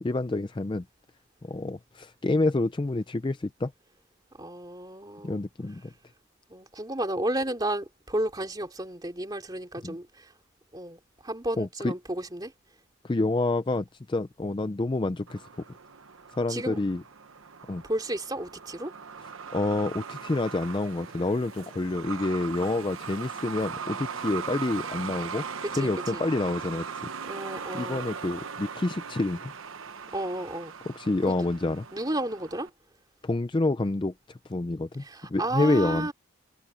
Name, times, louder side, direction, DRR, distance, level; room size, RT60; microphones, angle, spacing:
voice 1, 0.0-0.8 1.4-3.7 5.2-5.8 9.8-10.0 11.6-11.9 13.0-15.5 16.3-17.0 17.7-17.8 19.5-25.4 25.8-27.1 27.7-29.5 30.9-31.8 33.2-35.0 35.3-36.1, left 2 dB, 20° left, 0.4 m, -28 dB
voice 2, 4.4-5.4 6.5-10.1 10.7-12.5 16.5-16.8 17.8-18.9 25.6-26.2 27.3-28.1 30.1-30.7 31.3-31.5 31.9-32.7 35.0-36.1, right 1 dB, 20° right, 2.8 m, -32 dB
Truck, 15.3-32.7, right 6 dB, 70° right, 1.1 m, -39 dB
head